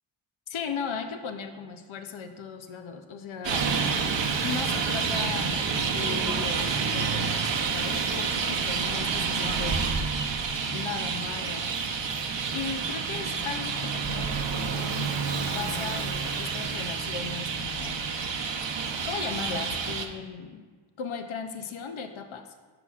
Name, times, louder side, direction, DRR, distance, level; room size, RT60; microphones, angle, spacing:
voice 1, 0.5-3.8 4.4-9.9 10.7-11.7 12.4-18.1 19.0-20.7 21.0-22.5, left 6 dB, 90° left, 7 dB, 0.7 m, -37 dB
Traffic noise roadway noise, 3.4-20.1, right 5 dB, 65° right, 0.8 m, -29 dB
10.5 x 5.9 x 2.4 m, 1.4 s
wide cardioid pair, 70°, 46 cm